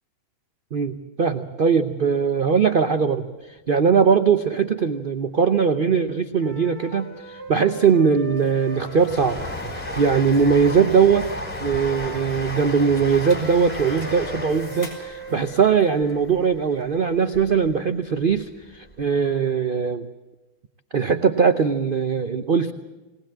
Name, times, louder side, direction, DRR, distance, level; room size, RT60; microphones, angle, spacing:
voice 1, 0.7-3.3 3.7-9.4 9.7-11.3 11.6-20.1 20.9-22.7, right 6 dB, 85° right, 8 dB, 0.4 m, -20 dB
sound 1, 6.4-10.7 11.6-16.2, right 1 dB, 30° left, 4.7 m, -41 dB
Train, 7.9-17.7 18.2-19.1 19.3-19.4, left 1 dB, 5° left, 2.9 m, -34 dB
sound 2, 8.4-15.6, left 1 dB, 50° left, 5.0 m, -49 dB
20.5 x 19.0 x 7.5 m, 1.1 s
omnidirectional pair, 2.0 m